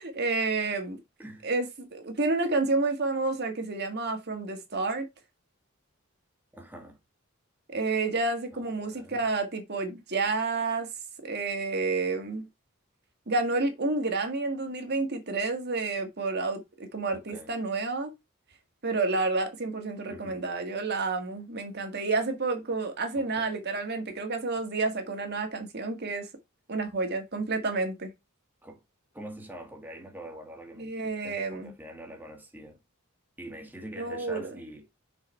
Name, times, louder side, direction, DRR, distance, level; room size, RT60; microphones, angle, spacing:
voice 1, 0.1-1.0 1.4-5.1 7.7-10.9 11.2-12.5 13.3-18.1 18.8-26.3 26.7-28.1 30.8-31.7 34.0-34.5, right 3 dB, 50° right, 1.8 m, -30 dB
voice 2, 1.2-1.5 6.5-7.0 8.5-9.2 17.1-17.5 20.1-20.4 23.1-23.5 28.6-28.8 29.1-32.8 33.4-34.9, right 1 dB, 10° right, 1.8 m, -45 dB
6.6 x 4.7 x 4.5 m
head